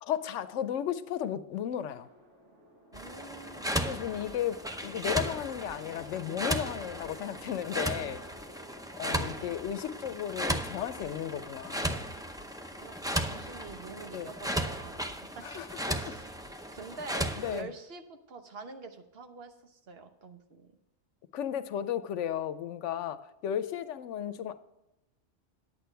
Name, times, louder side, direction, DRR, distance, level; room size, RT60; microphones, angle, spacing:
voice 1, 0.0-2.1 3.9-8.2 9.0-12.1 14.1-14.3 15.4-15.6 17.4-17.7 21.3-24.6, left 10 dB, 85° left, 1.0 m, -34 dB
sound 1, 1.9-15.1, equal, 85° right, 2.6 m, -56 dB
sound 2, 2.9-17.6, right 1 dB, 5° right, 0.4 m, -36 dB
voice 2, 2.9-3.9 9.0-9.4 12.7-15.5 15.8-16.3 16.7-20.7, right 4 dB, 60° right, 1.2 m, -46 dB
10.0 x 8.6 x 4.5 m
omnidirectional pair, 1.2 m